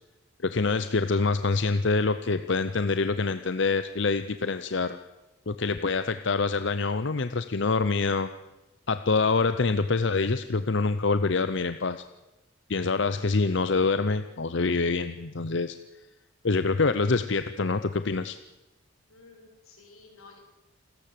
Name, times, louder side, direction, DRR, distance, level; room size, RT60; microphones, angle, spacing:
voice 1, 0.4-5.0 5.5-8.3 8.9-12.0 12.7-15.7 16.4-18.4, left 4 dB, 55° left, 11 dB, 0.7 m, -26 dB
voice 2, 19.1-20.4, left 3 dB, 85° left, 2 dB, 6.4 m, -52 dB
28.5 x 13.5 x 7.7 m, 1.0 s
head